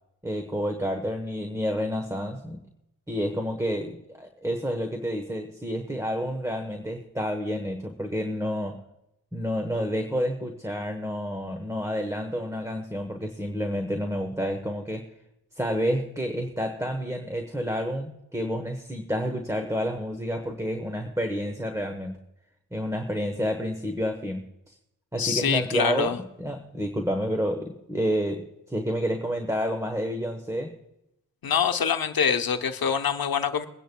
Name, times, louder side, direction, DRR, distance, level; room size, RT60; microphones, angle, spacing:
voice 1, 0.2-2.6 3.1-8.8 9.3-15.1 15.5-22.2 22.7-24.7 25.1-30.7, equal, 10° right, 5 dB, 1.1 m, -29 dB
voice 2, 25.2-26.2 31.4-33.7, left 7 dB, 75° left, 6 dB, 0.9 m, -25 dB
23.0 x 10.0 x 2.3 m, 0.87 s
wide cardioid pair, 75°, 36 cm